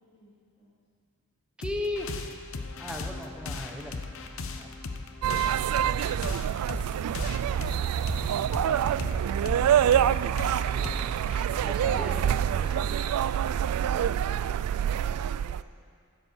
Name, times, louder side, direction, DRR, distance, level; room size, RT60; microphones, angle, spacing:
sound 1, 1.6-12.7, left 3 dB, 65° left, 0.8 m, -38 dB
voice 1, 1.6-2.1 2.8-4.0 4.5-4.7 7.1-7.5 8.6-8.8 10.5-13.0, left 1 dB, 5° right, 2 dB, 0.8 m, -38 dB
sound 2, 5.2-15.6, right 9 dB, 85° right, 0.3 m, -26 dB
sound 3, 6.5-13.2, right 1 dB, 45° right, 2.6 m, -52 dB
voice 2, 14.0-15.7, right 1 dB, 30° left, -9 dB, 3.7 m, -52 dB
11.0 x 8.2 x 7.7 m, 2.1 s
head